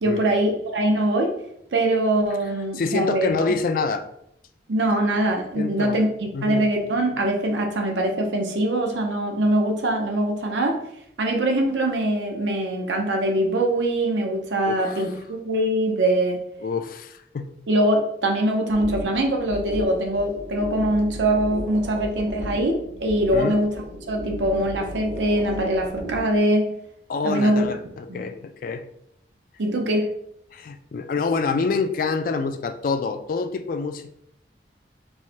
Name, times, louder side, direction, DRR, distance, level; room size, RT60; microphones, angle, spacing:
voice 1, 0.0-1.3 1.7-3.6 4.7-6.1 6.4-10.8 11.2-16.4 17.7-23.7 24.1-26.7 27.2-27.7 28.1-28.3 29.6-30.1, right 1 dB, 85° right, 2 dB, 0.7 m, -22 dB
voice 2, 2.7-4.0 5.5-6.0 6.3-6.6 14.7-15.0 16.6-17.5 23.3-23.6 27.1-28.8 30.5-34.1, left 4 dB, 50° left, 9 dB, 0.3 m, -26 dB
sound 1, 18.7-26.4, equal, 40° right, 0.6 m, -35 dB
4.6 x 2.2 x 2.8 m, 0.73 s
head